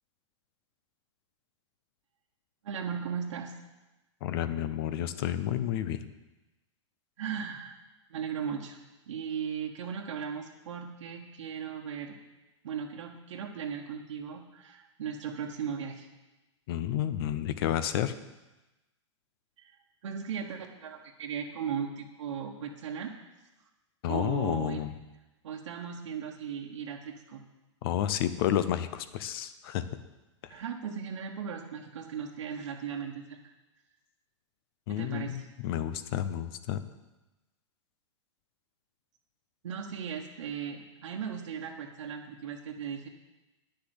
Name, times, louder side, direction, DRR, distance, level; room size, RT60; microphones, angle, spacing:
voice 1, 2.6-3.5 7.2-7.7 8.1-8.8 9.1-12.2 12.6-16.1 19.6-19.7 20.0-23.1 24.1-24.8 25.4-27.4 30.5-33.4 34.9-35.5 39.6-43.1, right 7 dB, 80° right, 0 dB, 1.4 m, -37 dB
voice 2, 4.2-6.0 16.7-18.1 24.0-24.9 27.8-29.8 34.9-36.8, left 11 dB, 50° left, 12 dB, 0.8 m, -30 dB
10.0 x 6.8 x 8.0 m, 1.1 s
hypercardioid pair, 145°, 16 cm